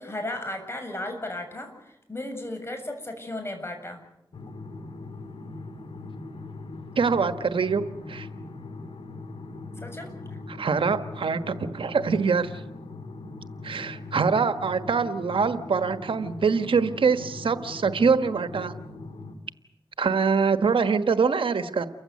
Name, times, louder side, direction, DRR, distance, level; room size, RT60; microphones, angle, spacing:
voice 1, 0.0-4.0 9.8-10.4, left 1 dB, 30° left, 6 dB, 7.2 m, -35 dB
sound 1, 4.3-19.4, left 3 dB, 85° left, 3.0 m, -40 dB
voice 2, 7.0-7.8 8.1-8.3 10.5-12.6 13.6-18.7 20.0-21.9, right 5 dB, 80° right, 10 dB, 1.4 m, -24 dB
29.5 x 15.0 x 9.6 m, 0.86 s
cardioid pair, 50°, 9 cm